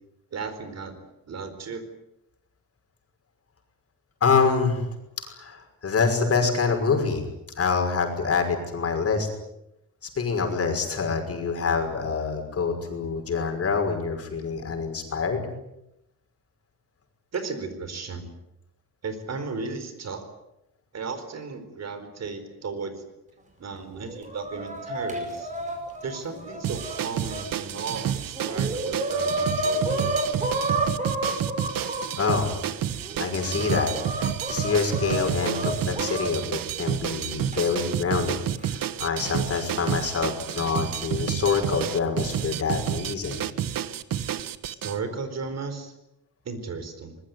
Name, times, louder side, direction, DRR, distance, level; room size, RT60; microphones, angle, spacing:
voice 1, 0.3-1.8 17.3-18.3 19.0-20.3 20.9-23.1 23.6-25.5 26.0-30.3 44.8-45.9 46.4-47.2, right 4 dB, 50° right, 9 dB, 4.4 m, -35 dB
voice 2, 4.2-4.9 5.2-7.2 7.6-9.3 10.2-15.5 32.2-32.5 33.2-33.9 34.5-38.4 38.7-43.4, left 5 dB, 45° left, 4 dB, 5.7 m, -26 dB
Chicken rooster, 24.0-27.4 28.0-28.1 28.4-32.4 33.0-36.3 37.5-37.6 38.6-38.7 39.7-40.0, right 2 dB, 20° right, 5.5 m, -30 dB
sound 1, 26.6-45.0, right 10 dB, 80° right, 1.4 m, -30 dB
24.5 x 21.5 x 9.5 m, 0.85 s
wide cardioid pair, 170°, 34 cm